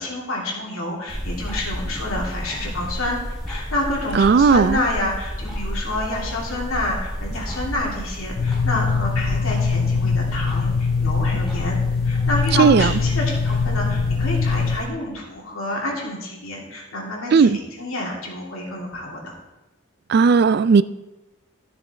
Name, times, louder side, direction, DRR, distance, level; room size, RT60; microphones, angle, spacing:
voice 1, 0.0-3.2 3.5-11.8 12.0-19.3, left 1 dB, 80° left, -2 dB, 2.8 m, -28 dB
sound 1, 1.1-14.8, equal, ahead, 2.8 m, -31 dB
voice 2, 4.1-4.8 12.6-12.9 17.3-17.6 20.1-20.8, right 5 dB, 50° right, 16 dB, 0.3 m, -15 dB
sound 2, 8.4-14.8, left 5 dB, 45° left, 0.3 m, -22 dB
13.0 x 6.8 x 4.3 m, 1.0 s
head